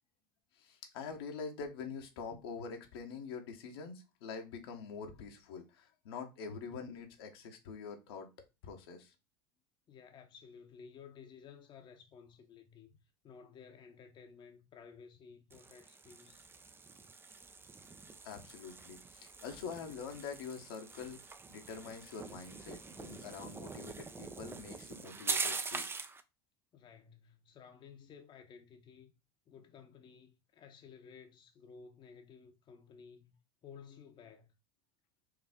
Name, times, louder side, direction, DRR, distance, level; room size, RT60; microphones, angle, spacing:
voice 1, 0.6-8.3 8.6-9.1 18.2-25.9, left 5 dB, 70° left, 1.1 m, -45 dB
voice 2, 9.9-13.0 13.2-16.4 26.7-29.1 29.5-33.4 33.6-34.5, left 6 dB, 40° left, 0.8 m, -55 dB
sound 1, 15.5-26.2, right 4 dB, 20° right, 0.5 m, -43 dB
4.7 x 2.6 x 3.6 m
hypercardioid pair, 80°, 13 cm